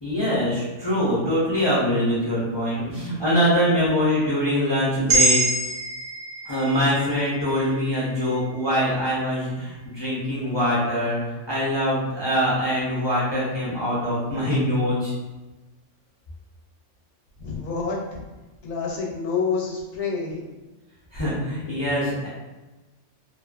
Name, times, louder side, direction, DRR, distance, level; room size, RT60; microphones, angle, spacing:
voice 1, 0.0-5.4 6.4-15.1 21.1-22.3, equal, 35° left, -9 dB, 0.4 m, -23 dB
sound 1, 5.1-9.3, right 3 dB, 45° right, 0.5 m, -26 dB
voice 2, 17.4-18.2 18.6-20.5, left 5 dB, 70° left, -2 dB, 1.0 m, -28 dB
2.6 x 2.4 x 2.4 m, 1.2 s
omnidirectional pair, 1.3 m